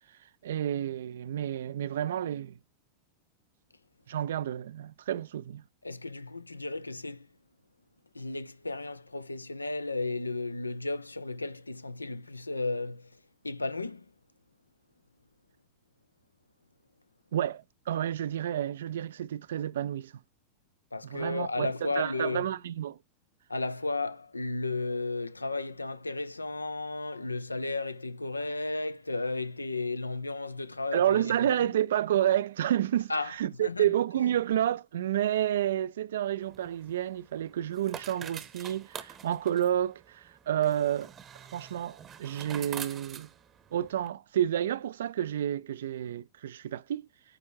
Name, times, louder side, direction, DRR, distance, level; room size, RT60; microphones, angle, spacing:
voice 1, 0.4-2.6 4.1-5.6 17.3-20.1 21.0-23.0 30.9-41.1 41.5-43.3 43.7-47.1, right 11 dB, 60° right, 0.3 m, -30 dB
voice 2, 5.8-7.3 8.1-14.1 20.9-22.5 23.5-31.7 33.1-33.3 33.6-33.9, left 3 dB, 80° left, 0.5 m, -34 dB
sound 1, 36.4-44.1, right 8 dB, 25° right, 0.8 m, -46 dB
8.8 x 3.4 x 4.5 m
figure-of-eight pair, 90°, 0 cm